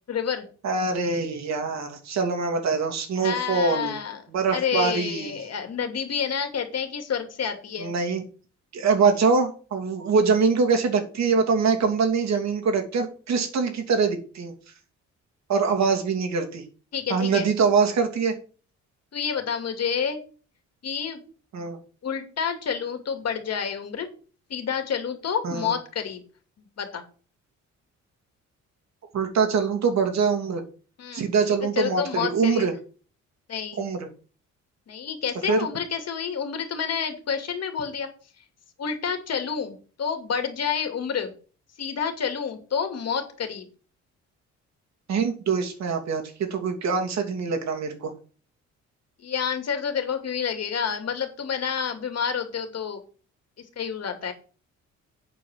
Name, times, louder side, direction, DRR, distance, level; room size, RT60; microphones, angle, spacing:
voice 1, 0.1-0.4 3.2-4.2 4.5-7.9 16.9-17.5 19.1-20.2 20.8-21.2 22.0-24.1 24.5-26.2 26.6-27.0 31.0-31.3 31.6-32.7 33.5-33.9 34.9-38.1 38.8-41.3 41.8-43.7 49.2-53.0 53.8-54.3, left 7 dB, 55° left, 6 dB, 2.5 m, -29 dB
voice 2, 0.6-4.0 4.3-5.3 7.8-8.2 8.7-14.5 15.5-16.6 17.1-18.3 21.5-21.8 25.4-25.7 29.1-30.6 31.1-32.7 33.8-34.1 35.5-35.7 45.1-48.1, right 5 dB, 60° right, 4 dB, 2.7 m, -24 dB
8.6 x 5.1 x 7.3 m, 0.38 s
cardioid pair, 90°, 30 cm